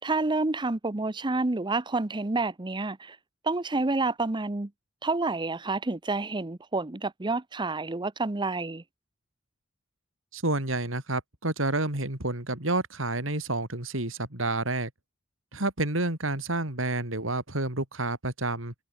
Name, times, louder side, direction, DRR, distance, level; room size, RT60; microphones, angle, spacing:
voice 1, 0.0-3.2 3.4-4.7 5.0-8.8, right 3 dB, 25° right, 0.8 m, -29 dB
voice 2, 10.3-14.9 15.5-18.7, right 2 dB, 70° right, 4.2 m, -29 dB
head